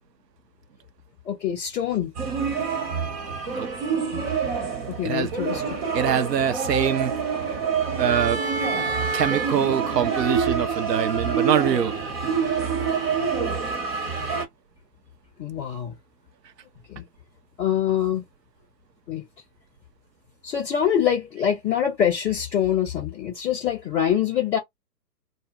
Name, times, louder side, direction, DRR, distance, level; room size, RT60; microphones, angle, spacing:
voice 1, 1.2-2.1 4.1-4.3 4.9-5.6 15.4-15.9 16.9-17.0 17.6-18.2 19.1-19.3 20.4-24.6, left 9 dB, 5° left, 0.6 m, -24 dB
sound 1, 2.1-14.4, right 5 dB, 35° right, 1.1 m, -26 dB
voice 2, 5.9-7.1 8.0-8.4 9.1-12.0, right 8 dB, 75° right, 0.6 m, -24 dB
2.3 x 2.0 x 3.3 m
figure-of-eight pair, 135°, 49 cm